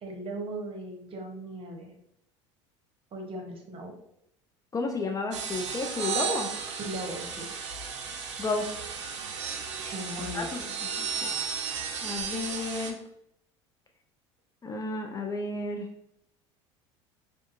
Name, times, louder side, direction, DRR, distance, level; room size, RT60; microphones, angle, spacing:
voice 1, 0.0-1.9 3.1-3.9 6.7-7.5 9.8-10.5, right 1 dB, 40° right, 1 dB, 0.8 m, -38 dB
voice 2, 4.7-6.5 8.4-8.7 10.3-10.7 11.0-11.3 12.0-13.0 14.6-15.9, left 3 dB, 25° left, 3 dB, 0.3 m, -32 dB
sound 1, 5.3-12.9, right 6 dB, 90° right, 0.4 m, -34 dB
2.4 x 2.3 x 2.5 m, 0.75 s
hypercardioid pair, 75°, 15 cm